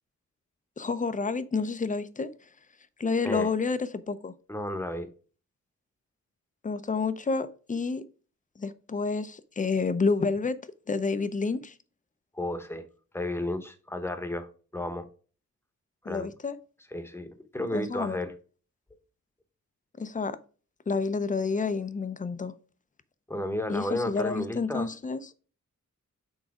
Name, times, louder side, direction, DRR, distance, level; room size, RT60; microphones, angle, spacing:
voice 1, 0.8-2.3 3.0-4.3 6.6-8.0 8.6-10.6 10.9-11.7 16.1-16.6 17.7-18.2 20.0-20.4 20.9-22.5 23.7-25.2, left 4 dB, 25° left, 0.5 m, -29 dB
voice 2, 4.5-5.1 12.3-12.9 13.1-15.1 16.0-16.3 16.9-17.3 17.5-18.3 23.3-24.9, left 1 dB, 10° left, 1.0 m, -32 dB
6.4 x 4.0 x 4.8 m
wide cardioid pair, 105°, 30 cm